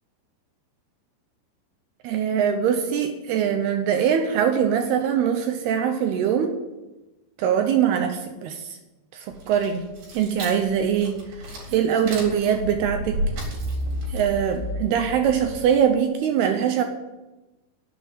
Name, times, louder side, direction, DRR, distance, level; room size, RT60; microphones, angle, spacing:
voice 1, 2.0-6.6 7.4-8.8 9.1-9.9 10.1-11.2 11.7-13.2 14.1-16.8, right 8 dB, 75° right, 6 dB, 2.6 m, -22 dB
sound 1, 9.3-15.8, equal, 55° right, 5.7 m, -32 dB
11.5 x 8.1 x 9.4 m, 1.1 s
omnidirectional pair, 5.3 m